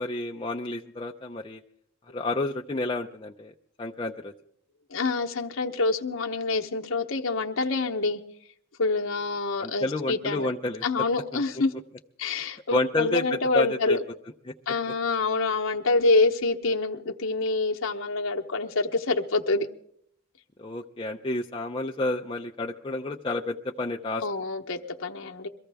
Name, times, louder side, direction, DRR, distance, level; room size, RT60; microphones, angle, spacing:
voice 1, 0.0-1.6 2.1-3.5 3.8-4.3 9.6-10.8 11.3-11.4 12.7-14.0 20.6-24.2, left 2 dB, 25° left, 1 dB, 0.5 m, -30 dB
voice 2, 4.9-8.2 8.8-10.5 10.8-11.7 12.2-14.0 14.7-19.7 24.2-25.5, left 3 dB, 70° left, 1 dB, 0.9 m, -26 dB
23.0 x 14.5 x 3.4 m, 0.68 s
head